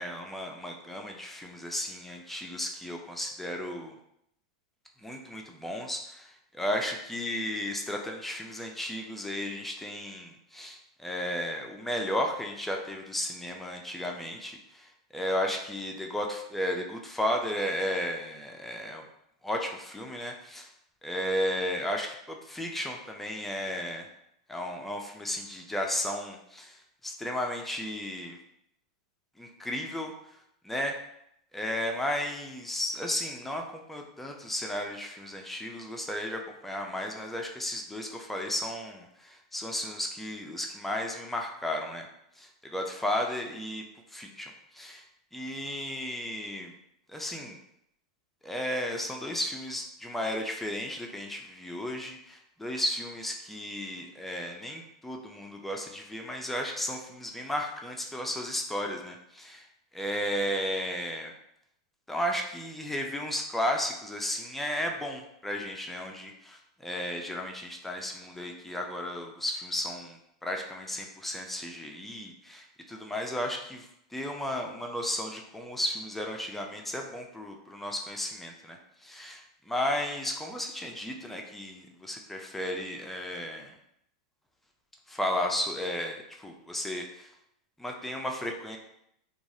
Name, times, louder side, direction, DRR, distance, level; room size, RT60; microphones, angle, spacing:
voice 1, 0.0-4.0 5.0-19.0 19.4-20.7 21.0-24.1 24.5-28.4 29.4-30.1 30.6-31.0 31.5-42.1 42.4-43.8 44.1-45.0 45.3-46.7 47.1-47.6 48.4-59.6 59.9-61.3 62.1-73.9 74.1-83.8 85.1-87.3 87.8-88.8, left 1 dB, 5° left, 2 dB, 0.4 m, -34 dB
3.0 x 2.3 x 2.6 m, 0.76 s
hypercardioid pair, 115°, 3 cm